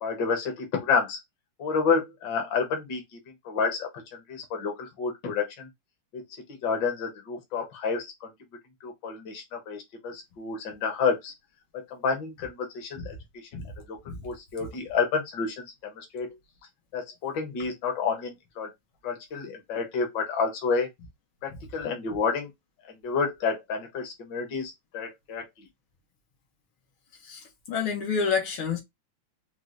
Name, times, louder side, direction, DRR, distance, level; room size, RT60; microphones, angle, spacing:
voice 1, 0.0-1.2 1.6-3.2 3.5-5.7 6.1-6.2 6.5-8.3 8.8-11.3 11.9-13.2 13.9-14.0 14.2-16.3 16.9-18.7 19.0-20.9 21.4-22.5 22.9-25.7, left 5 dB, 65° left, 1.7 m, -29 dB
voice 2, 27.2-28.8, left 5 dB, 85° left, 2.0 m, -29 dB
4.7 x 2.1 x 3.8 m
omnidirectional pair, 2.2 m